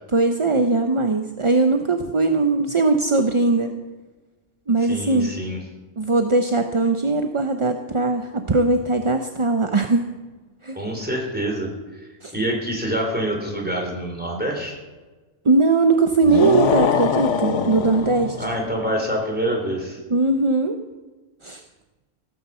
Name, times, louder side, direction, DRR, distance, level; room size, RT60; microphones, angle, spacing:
voice 1, 0.1-3.7 4.7-5.4 6.0-10.1 10.6-10.8 12.2-12.3 15.4-18.4 20.1-20.8 21.4-21.6, right 3 dB, 30° right, 6 dB, 0.7 m, -20 dB
voice 2, 4.8-5.6 10.7-14.8 18.4-20.0, right 1 dB, 10° right, 0 dB, 3.7 m, -26 dB
sound 1, 16.2-18.6, left 6 dB, 75° left, 1.2 m, -23 dB
16.5 x 9.3 x 6.9 m, 1.2 s
omnidirectional pair, 1.2 m